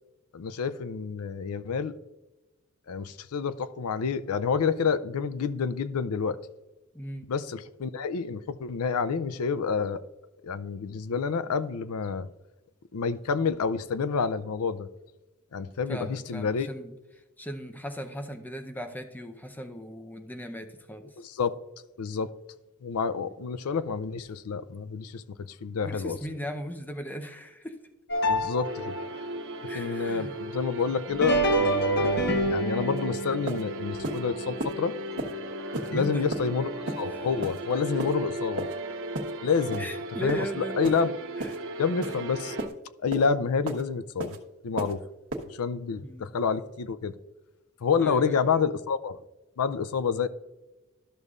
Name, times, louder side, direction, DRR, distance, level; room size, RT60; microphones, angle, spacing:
voice 1, 0.3-1.9 2.9-6.4 7.3-10.0 10.4-12.3 12.9-14.9 15.5-16.7 21.2-21.5 22.0-22.3 22.8-26.2 28.3-29.0 29.7-34.9 35.9-38.7 39.4-39.9 40.2-41.1 41.8-42.6 43.0-44.4 44.6-45.0 45.5-47.1 47.8-49.2 49.6-50.3, left 5 dB, 80° left, 0.4 m, -28 dB
voice 2, 6.9-7.3 11.5-11.6 15.9-21.1 25.8-27.8 29.7-30.5 35.9-36.3 37.1-37.3 39.8-40.8 41.4-41.6 46.0-46.3 48.0-48.7, equal, 10° left, 0.7 m, -38 dB
sound 1, 28.1-29.2 31.1-35.5 35.9-36.0 36.9-37.0 37.7-37.8, right 1 dB, 50° left, 1.0 m, -28 dB
sound 2, 28.6-42.7, right 1 dB, 65° right, 0.7 m, -36 dB
sound 3, 33.0-33.1 33.5-33.6 34.0-34.2 34.6-34.7 35.2-35.3 35.7-35.9 36.3-36.5 36.9-37.0 37.4-37.6 38.0-38.1 38.6-38.7 39.1-39.3 39.7-39.9 40.3-40.5 40.8-41.0 41.4-41.6 42.0-42.2 42.6-42.7 43.1-43.3 43.7-43.8 44.2-44.4 44.8-44.9 45.3-45.4, right 2 dB, 85° right, 1.2 m, -33 dB
12.5 x 6.5 x 2.4 m
head